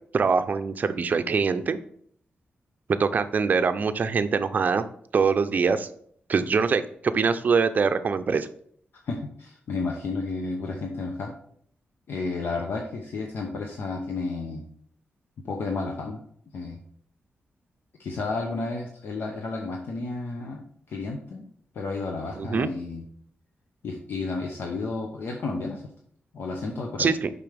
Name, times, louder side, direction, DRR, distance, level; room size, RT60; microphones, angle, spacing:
voice 1, 0.1-1.8 3.0-4.8 5.1-5.9 6.3-8.5 22.4-22.7 27.0-27.3, right 5 dB, 45° right, 11 dB, 0.5 m, -23 dB
voice 2, 9.0-11.3 12.1-14.6 15.4-16.2 16.5-16.8 18.0-20.6 20.9-21.4 21.7-23.0 23.8-25.8 26.3-27.1, left 3 dB, 65° left, 1 dB, 0.9 m, -32 dB
6.9 x 5.4 x 3.4 m, 0.63 s
wide cardioid pair, 130°, 4 cm